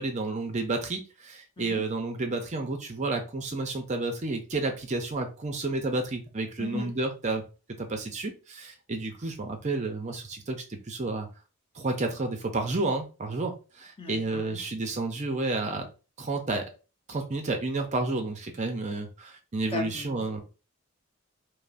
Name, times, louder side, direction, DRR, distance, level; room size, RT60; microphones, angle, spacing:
voice 1, 0.0-7.4 7.8-11.3 11.8-15.9 16.2-16.7 17.1-20.4, right 2 dB, 35° right, 5 dB, 0.5 m, -31 dB
voice 2, 6.6-6.9 14.0-14.6 19.7-20.4, left 2 dB, 25° left, 2 dB, 0.8 m, -36 dB
5.2 x 2.0 x 2.5 m, 0.33 s
head